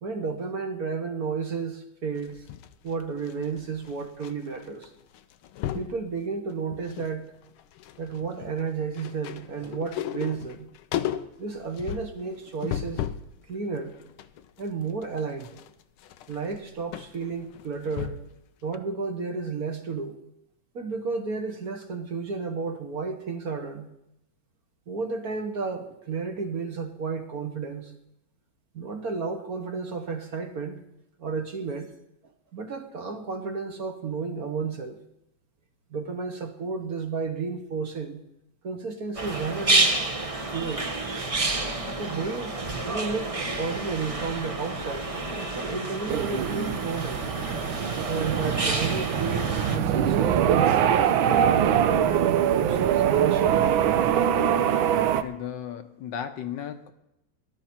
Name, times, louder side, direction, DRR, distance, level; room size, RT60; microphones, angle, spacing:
voice 1, 0.0-2.4 2.8-4.9 5.7-7.3 8.0-10.7 11.4-13.0 13.5-13.9 14.6-15.5 16.3-18.2 18.6-20.2 20.7-23.9 24.9-27.9 28.7-30.8 31.2-31.9 32.5-35.0 35.9-38.2 38.6-39.9 40.5-41.2 42.0-45.1 45.5-47.3 48.1-50.8 51.3-53.6, right 4 dB, 50° right, 5 dB, 1.5 m, -32 dB
sound 1, 2.2-4.3 4.6-4.9 5.1-6.0 6.5-7.2 7.4-13.3 13.7-18.4 18.7-18.8, left 10 dB, 90° left, 1.6 m, -35 dB
sound 2, 39.1-49.8, right 2 dB, 25° right, 0.8 m, -29 dB
sound 3, 46.1-55.2, right 9 dB, 80° right, 1.5 m, -23 dB
voice 2, 54.9-56.9, left 9 dB, 65° left, 8 dB, 1.4 m, -35 dB
19.0 x 12.0 x 4.4 m, 0.84 s
omnidirectional pair, 2.2 m